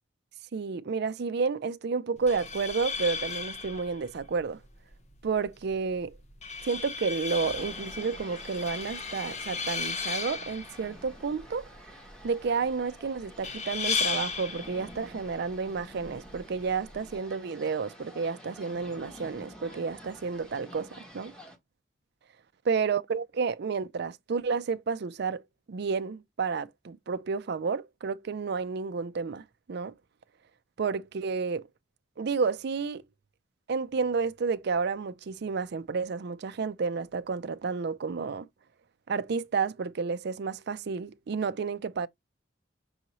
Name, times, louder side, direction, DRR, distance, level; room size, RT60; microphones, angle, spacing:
voice 1, 0.5-4.6 5.2-6.2 6.6-11.6 12.2-21.3 22.7-25.4 25.7-29.4 29.7-29.9 30.8-31.7 32.2-33.0 33.7-38.5 39.1-42.1, right 5 dB, 60° right, 0.4 m, -31 dB
sound 1, 2.2-17.2, left 5 dB, 35° left, 0.8 m, -36 dB
sound 2, 7.4-21.6, equal, 5° left, 1.3 m, -49 dB
5.5 x 2.6 x 2.9 m
head